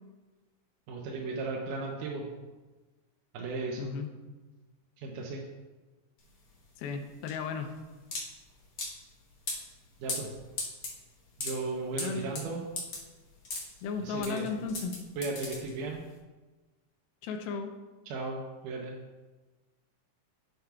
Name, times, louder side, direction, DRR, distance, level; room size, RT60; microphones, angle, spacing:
voice 1, 0.9-2.3 3.3-4.0 5.0-5.4 10.0-10.3 11.4-12.6 14.0-14.5 15.2-16.0 18.1-19.0, right 3 dB, 75° right, -1 dB, 2.1 m, -35 dB
voice 2, 3.8-4.1 6.8-7.7 11.9-12.3 13.8-15.0 17.2-17.7, left 5 dB, 85° left, 6 dB, 2.5 m, -35 dB
sound 1, 6.2-16.1, left 2 dB, 55° left, 1.5 m, -39 dB
11.5 x 6.7 x 2.3 m, 1.2 s
omnidirectional pair, 4.3 m